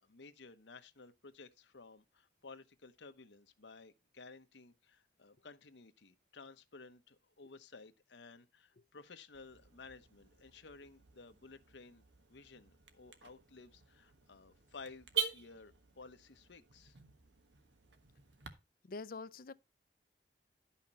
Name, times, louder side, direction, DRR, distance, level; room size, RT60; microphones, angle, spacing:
voice 1, 0.0-12.0 12.3-17.0, left 4 dB, 85° left, 1.0 m, -55 dB
Car / Alarm, 9.3-18.5, right 8 dB, 85° right, 1.3 m, -46 dB
voice 2, 18.8-19.5, left 3 dB, 55° left, 0.5 m, -45 dB
12.0 x 5.8 x 4.3 m
head